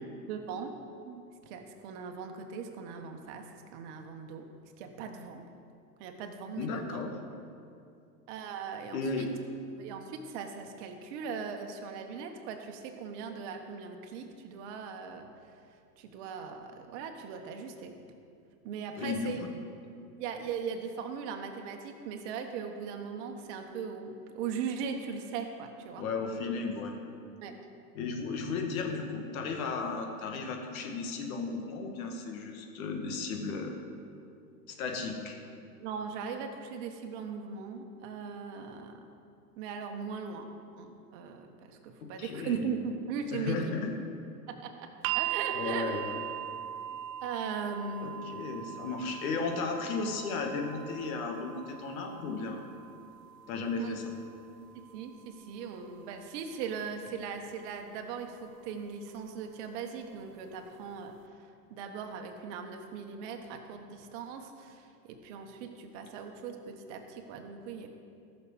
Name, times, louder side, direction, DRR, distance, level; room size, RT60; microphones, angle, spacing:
voice 1, 0.3-0.7 1.0-4.4 4.8-5.4 6.0-7.0 8.3-9.3 9.8-15.3 16.0-17.9 18.6-19.4 20.2-26.0 27.4-27.5 35.8-39.0 39.6-40.5 40.8-43.8 44.6-44.9 45.1-46.0 47.2-48.3 53.8-54.0 54.9-61.1 61.7-67.9, right 6 dB, 45° right, 4 dB, 1.5 m, -39 dB
voice 2, 6.6-7.2 8.9-9.3 19.0-19.5 26.0-27.0 28.0-33.8 34.7-35.4 42.0-42.7 43.3-43.9 45.5-46.2 48.0-52.7 53.5-54.1, left 4 dB, 60° left, 3 dB, 1.9 m, -35 dB
sound 1, 45.0-57.1 58.2-58.3, right 11 dB, 60° right, 0.6 m, -40 dB
14.0 x 6.6 x 6.4 m, 2.5 s
hypercardioid pair, 120°, 48 cm